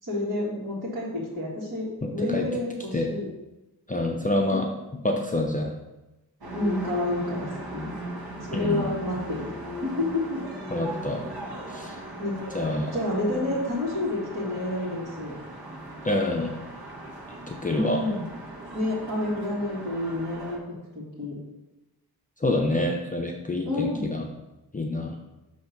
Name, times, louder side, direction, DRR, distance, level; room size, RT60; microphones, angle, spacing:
voice 1, 0.0-3.3 4.5-4.6 6.5-7.9 8.5-9.5 9.8-10.4 12.2-12.4 12.9-15.3 17.7-18.2 18.7-20.6 20.9-21.4 23.6-24.1, left 1 dB, 55° right, -7 dB, 1.8 m, -29 dB
voice 2, 2.0-2.5 2.9-3.1 3.9-4.7 5.0-5.7 8.5-8.9 10.7-11.3 11.7-11.9 12.5-13.0 16.0-16.5 17.5-18.0 22.4-24.2 24.7-25.2, left 2 dB, 20° left, 0 dB, 0.5 m, -27 dB
sound 1, 6.4-20.6, right 1 dB, 70° right, 1.2 m, -38 dB
6.7 x 2.9 x 5.7 m, 1.0 s
wide cardioid pair, 95°, 38 cm